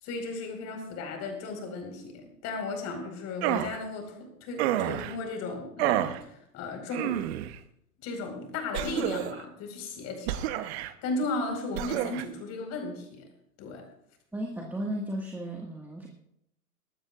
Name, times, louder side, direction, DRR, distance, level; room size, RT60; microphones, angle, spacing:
voice 1, 0.0-7.3 8.0-10.5 11.0-13.2 13.6-13.8, left 3 dB, 35° left, 3 dB, 4.6 m, -35 dB
sound 1, 3.4-3.8 4.6-5.2 5.8-6.2 6.9-7.6 8.7-9.4 10.3-10.9 11.7-12.2, right 13 dB, 45° right, 1.0 m, -29 dB
voice 2, 14.3-16.1, right 1 dB, 5° right, -1 dB, 1.7 m, -34 dB
23.5 x 12.5 x 2.5 m, 0.75 s
hypercardioid pair, 110°, 46 cm